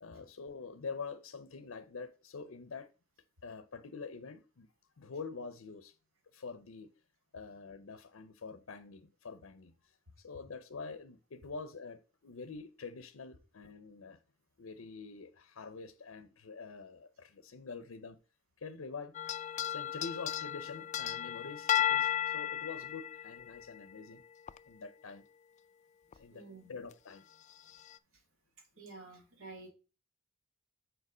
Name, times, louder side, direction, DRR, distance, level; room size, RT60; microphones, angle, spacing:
voice 1, 0.0-2.9 3.4-4.7 5.0-5.9 6.3-6.9 7.3-14.2 14.6-18.2 18.6-24.2 24.6-25.2 26.2-27.2, left 4 dB, 80° left, 0.6 m, -46 dB
sound 1, 19.1-24.0 24.5-24.6 26.1-26.2 26.9-27.0 27.7-28.0, left 11 dB, 35° left, 0.3 m, -34 dB
voice 2, 26.3-26.7 28.8-29.7, right 3 dB, 75° right, 2.0 m, -50 dB
6.6 x 4.5 x 4.9 m
head